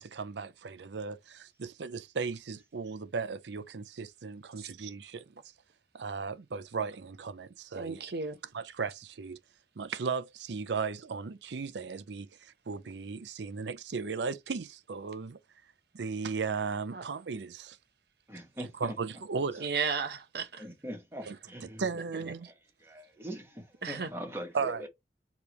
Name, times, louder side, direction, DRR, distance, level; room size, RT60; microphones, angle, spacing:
voice 1, 0.0-5.2 5.9-8.0 8.5-9.4 9.8-15.4 15.9-17.8 18.6-19.7 21.3-22.5 24.5-24.9, right 5 dB, 85° right, 0.5 m, -36 dB
voice 2, 7.7-8.4 16.9-17.0 19.6-20.7 23.8-24.1, right 5 dB, 65° right, 0.9 m, -34 dB
voice 3, 18.3-18.9 20.6-21.8 22.8-24.9, equal, 15° right, 1.5 m, -42 dB
4.8 x 3.4 x 3.0 m
head